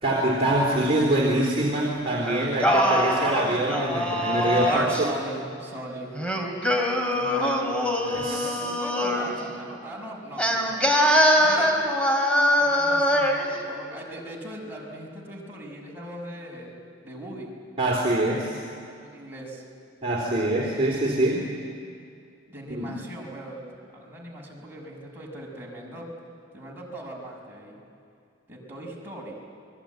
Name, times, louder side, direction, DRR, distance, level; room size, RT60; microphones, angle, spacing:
voice 1, 0.0-5.1 8.0-8.5 17.8-18.6 20.0-21.5 22.7-22.9, right 1 dB, 30° right, -3 dB, 3.4 m, -24 dB
voice 2, 2.2-2.7 4.6-6.1 7.1-7.7 8.1-10.9 11.4-11.8 12.6-16.7 17.0-17.5 19.0-19.6 22.5-23.6 23.9-26.1 26.5-27.8 28.5-29.3, right 1 dB, 10° right, -3 dB, 6.0 m, -39 dB
Singing, 2.3-5.1 6.2-9.4 10.4-13.5, equal, 5° left, 3.2 m, -23 dB
28.0 x 21.0 x 9.3 m, 2.4 s
head